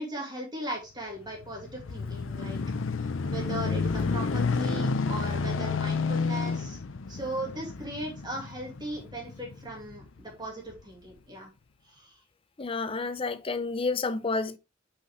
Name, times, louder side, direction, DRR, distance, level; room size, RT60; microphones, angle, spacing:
voice 1, 0.0-2.6 3.0-6.8 7.1-11.5 11.9-12.2, right 1 dB, 20° right, 2.2 m, -38 dB
sound 1, 1.3-10.1 10.7-10.8, left 4 dB, 75° left, 0.6 m, -30 dB
voice 2, 12.6-14.6, left 3 dB, 30° left, 0.6 m, -30 dB
8.3 x 5.0 x 3.1 m
head